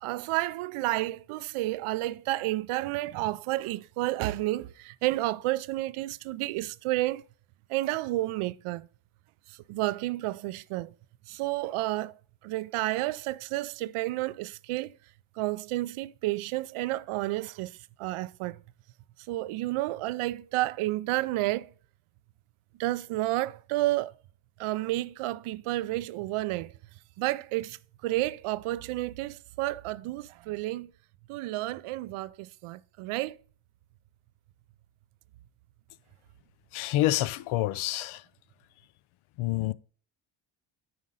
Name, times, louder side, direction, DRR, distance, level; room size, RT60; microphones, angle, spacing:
voice 1, 0.0-7.2 7.7-8.9 9.5-10.9 11.3-15.0 15.4-18.6 19.3-21.7 22.8-24.1 24.6-26.7 27.2-27.8 28.0-30.9 31.3-33.4, right 17 dB, 85° right, 0.6 m, -31 dB
voice 2, 36.7-38.3 39.4-39.7, left 15 dB, 75° left, 0.6 m, -28 dB
9.6 x 5.2 x 3.8 m
cardioid pair, 95°, 49 cm